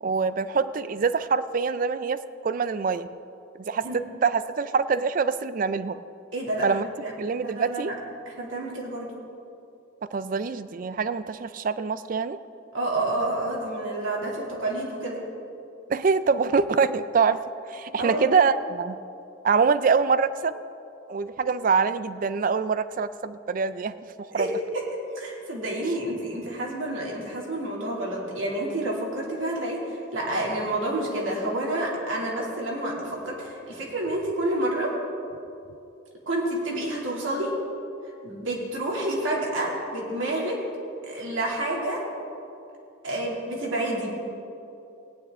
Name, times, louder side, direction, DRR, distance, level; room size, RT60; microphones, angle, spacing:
voice 1, 0.0-3.1 3.6-6.0 6.6-6.9 7.2-7.9 10.1-12.4 15.9-17.4 17.7-19.0 19.4-20.6 21.1-24.5, right 5 dB, 45° right, 14 dB, 0.4 m, -25 dB
voice 2, 6.3-7.1 7.4-7.9 8.3-9.1 12.7-15.2 18.0-18.3 24.3-24.8 25.2-34.9 36.3-37.5 38.2-40.6 41.0-42.0 43.0-44.1, right 1 dB, 85° right, -3 dB, 2.6 m, -29 dB
17.0 x 10.0 x 3.7 m, 2.7 s
head